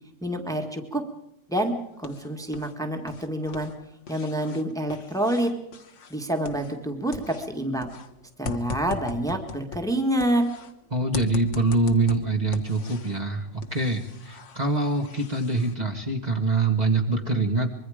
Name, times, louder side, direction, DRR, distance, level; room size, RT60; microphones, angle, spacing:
voice 1, 0.2-1.1 1.5-3.7 4.1-5.5 6.1-7.9 8.4-10.4, right 1 dB, ahead, 4 dB, 1.7 m, -27 dB
sound 1, 1.6-2.7 3.0-6.9 7.1-10.7 11.1-13.2 13.6-15.7, left 5 dB, 60° left, 1.5 m, -40 dB
voice 2, 10.9-17.7, right 3 dB, 30° right, 2 dB, 1.7 m, -24 dB
24.5 x 22.5 x 5.1 m, 0.84 s
omnidirectional pair, 1.5 m